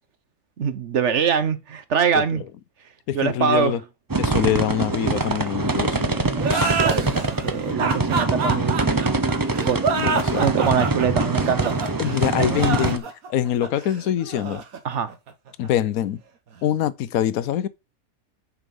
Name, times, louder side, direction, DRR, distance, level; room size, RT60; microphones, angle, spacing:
voice 1, 0.6-2.4 3.1-3.8 6.1-8.9 9.6-9.8 10.4-11.8 12.4-12.5 14.8-15.1, right 7 dB, 55° right, 1.1 m, -24 dB
voice 2, 3.1-3.8 4.2-6.9 9.9-10.4 12.0-14.6 15.6-16.2 16.6-17.7, left 11 dB, 80° left, 1.1 m, -24 dB
sound 1, 4.1-13.0, right 3 dB, 25° right, 0.4 m, -24 dB
sound 2, 6.4-15.7, right 5 dB, 75° right, 1.7 m, -27 dB
6.8 x 6.2 x 5.2 m
omnidirectional pair, 1.5 m